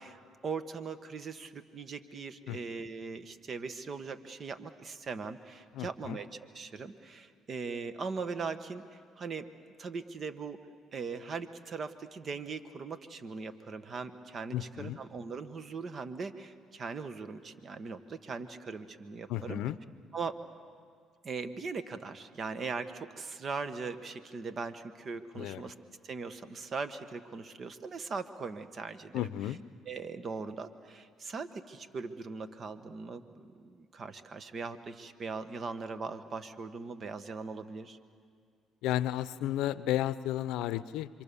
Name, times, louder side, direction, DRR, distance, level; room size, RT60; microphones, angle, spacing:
voice 1, 0.0-6.3 6.5-9.5 9.8-10.6 10.9-19.6 20.1-20.4 21.2-25.7 26.0-29.2 29.9-38.0, right 4 dB, 45° right, 10 dB, 1.4 m, -40 dB
voice 2, 5.7-6.2 14.5-15.0 19.3-19.8 25.3-25.6 29.1-29.6 38.8-41.1, left 13 dB, 80° left, 16 dB, 0.6 m, -33 dB
26.5 x 24.5 x 7.0 m, 2.1 s
supercardioid pair, 70°, 0 cm